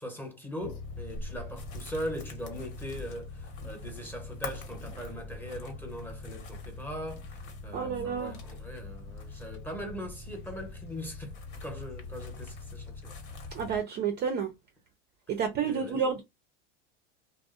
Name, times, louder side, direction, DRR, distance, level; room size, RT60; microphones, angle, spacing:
voice 1, 0.0-11.3 11.6-13.1 15.6-16.0, equal, 5° left, 0.8 m, -40 dB
sound 1, 0.6-13.8, left 3 dB, 75° left, 1.1 m, -42 dB
voice 2, 7.7-8.4 13.5-14.5 15.3-16.2, right 6 dB, 30° right, 0.4 m, -30 dB
2.5 x 2.0 x 2.5 m
supercardioid pair, 115°, 35 cm